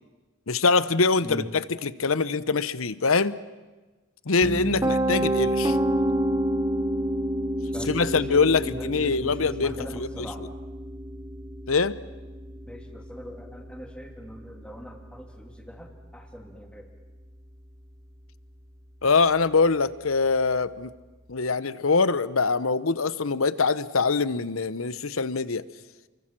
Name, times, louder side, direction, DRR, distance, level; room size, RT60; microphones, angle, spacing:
voice 1, 0.5-3.4 4.3-5.8 7.9-10.5 11.7-12.0 19.0-20.9 21.3-25.6, left 4 dB, 80° left, 16 dB, 1.0 m, -24 dB
Piano, 4.4-16.3, right 1 dB, 15° right, 0.9 m, -29 dB
voice 2, 7.7-9.3 9.6-10.4 12.7-16.8, equal, 5° left, 3 dB, 3.0 m, -41 dB
29.5 x 23.5 x 7.6 m, 1.3 s
head